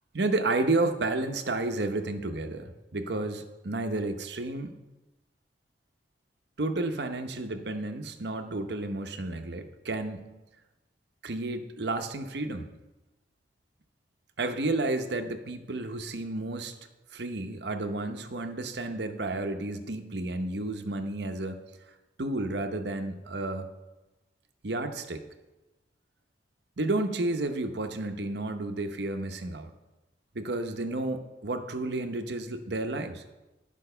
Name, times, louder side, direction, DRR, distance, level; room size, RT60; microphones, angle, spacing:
voice 1, 0.1-4.8 6.6-10.3 11.2-12.7 14.4-16.7 17.1-21.6 22.2-23.7 24.6-25.2 26.8-29.7 30.3-33.2, right 2 dB, 65° right, 8 dB, 0.8 m, -31 dB
11.0 x 5.3 x 6.7 m, 1.1 s
head